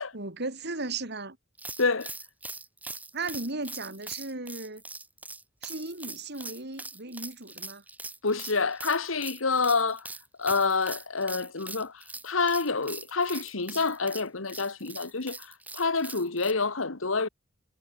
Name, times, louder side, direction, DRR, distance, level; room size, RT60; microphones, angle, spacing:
voice 1, 0.1-1.4 3.1-4.8 5.6-7.8, right 3 dB, 55° right, 5.1 m, -36 dB
sound 1, 1.6-16.5, right 2 dB, 10° right, 3.4 m, -42 dB
voice 2, 1.8-2.1 8.2-10.1 10.4-17.3, left 4 dB, 85° left, 1.7 m, -28 dB
head